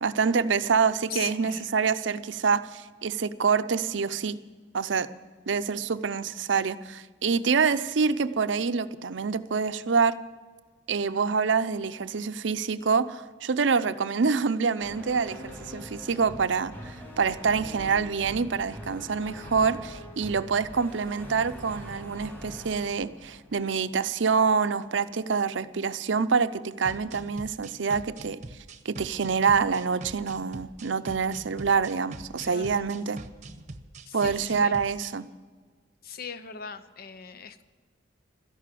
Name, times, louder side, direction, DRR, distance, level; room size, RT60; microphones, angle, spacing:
voice 1, 0.0-4.4 4.7-5.1 5.5-10.2 10.9-28.4 28.8-33.2 34.1-35.3, right 5 dB, 75° right, 13 dB, 0.6 m, -26 dB
voice 2, 1.1-1.7 16.1-16.3 32.4-32.9 34.1-34.8 36.0-37.6, left 6 dB, 55° left, 12 dB, 0.8 m, -40 dB
sound 1, 14.8-24.2, equal, 10° left, 2.7 m, -43 dB
sound 2, 26.8-35.1, right 2 dB, 40° right, 0.9 m, -44 dB
13.0 x 11.0 x 7.5 m, 1.5 s
head